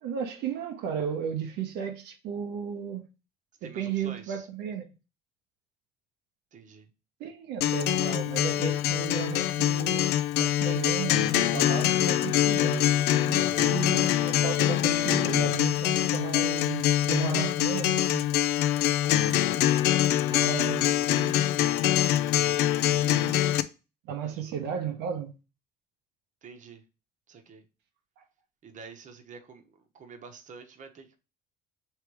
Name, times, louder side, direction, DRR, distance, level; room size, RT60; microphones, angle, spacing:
voice 1, 0.0-3.1 3.8-4.9 7.2-12.9 13.3-18.2 20.3-21.0 24.0-25.3 28.2-28.3, right 8 dB, 90° right, 0.8 m, -34 dB
voice 2, 3.6-4.5 6.5-6.9 13.3-13.7 19.4-19.9 20.9-21.4 24.2-24.6 26.4-26.8 27.3-27.6 28.6-29.6 29.9-31.2, right 5 dB, 50° right, 1.0 m, -48 dB
Acoustic guitar, 7.6-23.6, left 12 dB, 85° left, 0.4 m, -24 dB
3.3 x 3.2 x 4.6 m
cardioid pair, 110°, 17 cm